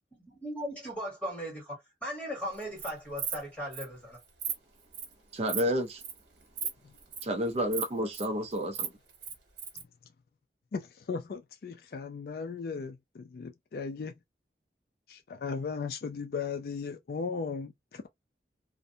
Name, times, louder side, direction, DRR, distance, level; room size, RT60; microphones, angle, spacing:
voice 1, 0.1-4.2, equal, 5° left, 1.4 m, -38 dB
Insect, 2.6-2.9 3.2-3.4 3.7-3.8 4.2-4.5 4.9-5.1 5.5-5.7 6.0-6.2 6.6-6.7 7.0-7.2 7.7-8.2 8.6-9.8, right 7 dB, 80° right, 1.0 m, -35 dB
voice 2, 5.3-6.0 7.2-8.9, equal, 35° right, 0.4 m, -30 dB
voice 3, 10.7-14.2 15.1-18.1, left 5 dB, 55° left, 0.3 m, -37 dB
2.5 x 2.1 x 2.6 m
head